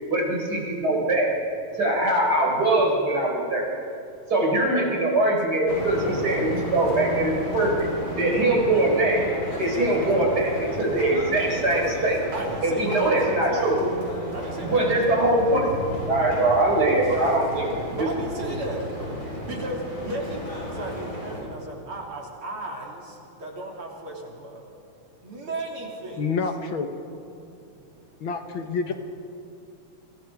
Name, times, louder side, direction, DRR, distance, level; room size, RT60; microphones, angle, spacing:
voice 1, 0.1-1.3 1.8-3.7 4.3-7.9 8.2-9.2 9.6-12.2 12.6-13.8 14.6-15.7 16.1-17.7 18.0-18.1, right 2 dB, 45° right, -1 dB, 5.6 m, -22 dB
sound 1, 5.7-21.4, left 1 dB, 35° left, 6.5 m, -33 dB
voice 2, 9.7-10.1 12.3-13.8 14.3-14.8 17.9-18.8 19.4-23.0 23.4-24.6 25.2-26.2 27.2-27.4, right 1 dB, 80° right, -1 dB, 4.1 m, -34 dB
voice 3, 26.2-26.9 28.2-28.9, left 4 dB, 70° left, 6 dB, 2.1 m, -28 dB
29.0 x 25.5 x 5.0 m, 2.6 s
omnidirectional pair, 2.3 m